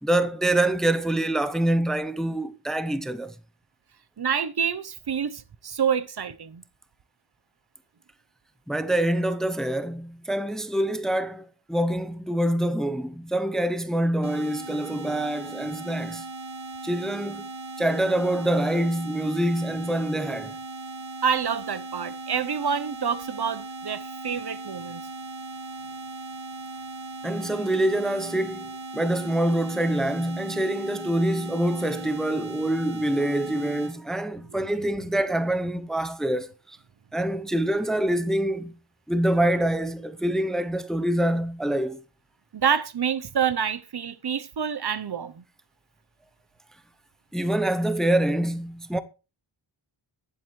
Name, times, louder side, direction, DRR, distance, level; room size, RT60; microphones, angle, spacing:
voice 1, 0.0-3.3 8.7-16.2 16.8-17.5 17.8-20.6 27.2-36.8 37.1-38.7 39.1-42.0 47.3-49.0, right 1 dB, ahead, 0.7 m, -25 dB
voice 2, 4.2-6.6 21.2-25.0 42.5-45.4, right 7 dB, 55° right, 0.8 m, -27 dB
sound 1, 14.2-33.9, right 3 dB, 85° right, 2.4 m, -38 dB
20.5 x 7.7 x 3.2 m
wide cardioid pair, 95°, 47 cm